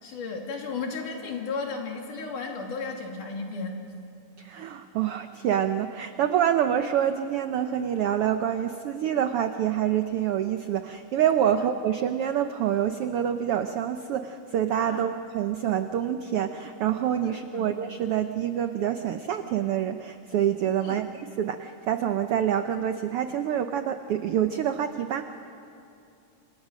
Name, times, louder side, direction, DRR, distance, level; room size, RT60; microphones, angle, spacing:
voice 1, 0.0-3.8 14.9-15.1 17.2-17.7 20.8-21.1, left 4 dB, 85° left, 1 dB, 4.2 m, -34 dB
voice 2, 4.4-25.3, right 10 dB, 90° right, 8 dB, 1.2 m, -26 dB
28.5 x 25.0 x 6.3 m, 2.7 s
omnidirectional pair, 3.6 m